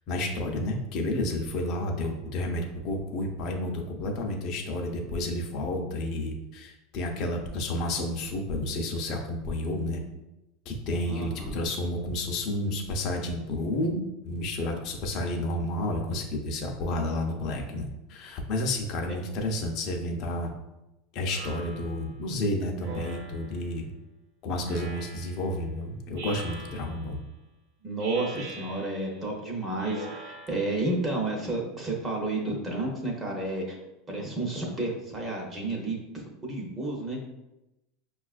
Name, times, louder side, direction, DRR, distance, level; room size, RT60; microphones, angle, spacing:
voice 1, 0.1-10.0 10.7-20.5 21.1-23.9 24.4-27.2, left 1 dB, 45° left, 1 dB, 0.6 m, -31 dB
voice 2, 11.1-11.5 27.8-33.8 34.1-37.2, right 2 dB, 20° right, -1 dB, 0.7 m, -31 dB
Speech synthesizer, 21.3-22.1 22.8-23.7 24.6-25.5 26.2-27.2 28.0-29.2 29.8-30.8, right 3 dB, 75° right, 0.8 m, -43 dB
5.4 x 2.3 x 2.4 m, 0.94 s
supercardioid pair, 145°, 0 cm